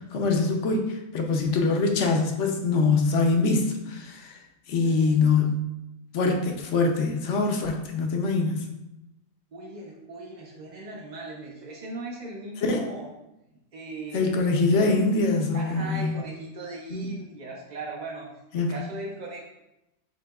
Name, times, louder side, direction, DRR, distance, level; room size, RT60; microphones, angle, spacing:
voice 1, 0.0-4.4 4.7-5.6 6.1-8.7 12.6-12.9 14.1-16.1 16.9-17.1 18.5-18.8, left 3 dB, 65° left, 3 dB, 0.9 m, -24 dB
voice 2, 4.8-5.3 9.5-13.1 13.7-14.3 15.5-19.5, right 2 dB, 50° right, -2 dB, 0.5 m, -38 dB
7.8 x 2.7 x 2.3 m, 0.92 s
omnidirectional pair, 1.4 m